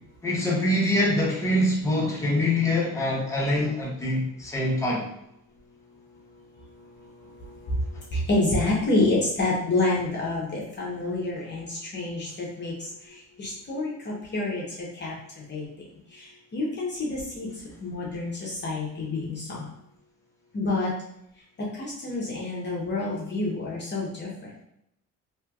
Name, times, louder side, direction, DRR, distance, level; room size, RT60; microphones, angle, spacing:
voice 1, 0.2-5.1, left 1 dB, 10° left, -5 dB, 1.0 m, -24 dB
voice 2, 8.1-12.7 13.4-14.6 15.0-15.1 15.5-15.6 16.5-17.5 17.8-19.7 20.5-20.9 21.8-24.3, left 2 dB, 35° left, -4 dB, 0.8 m, -27 dB
3.2 x 3.0 x 2.3 m, 0.78 s
cardioid pair, 90°, 30 cm